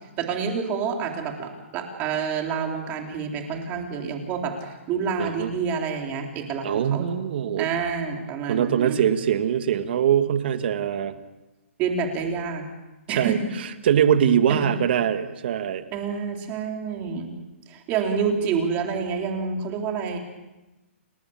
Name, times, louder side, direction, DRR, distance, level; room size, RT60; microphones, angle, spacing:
voice 1, 0.2-7.1 7.6-9.0 11.8-12.6 13.1-13.3 14.6-14.8 15.9-17.3 17.7-20.2, right 6 dB, 20° right, 2 dB, 3.8 m, -28 dB
voice 2, 5.2-5.5 6.6-7.7 8.5-11.2 13.1-15.8 17.1-17.3, right 9 dB, 50° right, 9 dB, 2.0 m, -23 dB
29.5 x 19.0 x 7.3 m, 1.1 s
hypercardioid pair, 165°, 7 cm